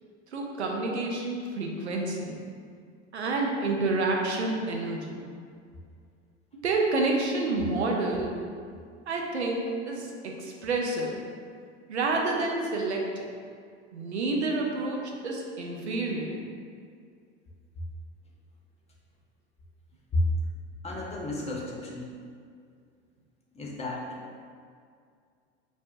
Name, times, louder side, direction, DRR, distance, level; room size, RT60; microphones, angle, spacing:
voice 1, 0.3-2.4 3.1-5.2 6.5-8.4 9.1-11.2 11.9-13.3 13.9-16.4, right 2 dB, 85° right, 0 dB, 0.5 m, -29 dB
voice 2, 20.8-22.1 23.5-24.1, left 1 dB, 20° left, -3 dB, 0.7 m, -31 dB
5.0 x 2.3 x 2.5 m, 2.2 s
figure-of-eight pair, 70°, 32 cm